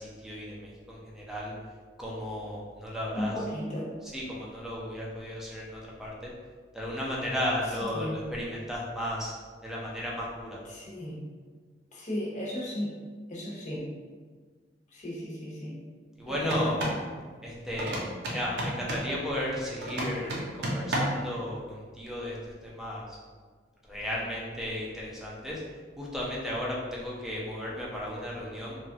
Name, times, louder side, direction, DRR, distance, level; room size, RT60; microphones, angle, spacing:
voice 1, 0.0-1.5 2.0-3.3 4.1-6.3 6.7-9.3 9.6-10.6 16.2-16.8 17.4-18.0 18.3-22.4 22.6-23.2 23.9-25.6 26.0-28.8, left 1 dB, 5° right, -5 dB, 0.5 m, -34 dB
voice 2, 3.2-3.9 7.6-8.2 10.6-11.2 11.9-13.0 13.3-13.9 14.9-15.8 16.3-16.9, equal, 40° left, -5 dB, 0.7 m, -35 dB
sound 1, 16.4-17.0 17.8-19.1 19.8-21.3, right 1 dB, 65° right, 0.6 m, -32 dB
3.0 x 2.3 x 2.7 m, 1.5 s
head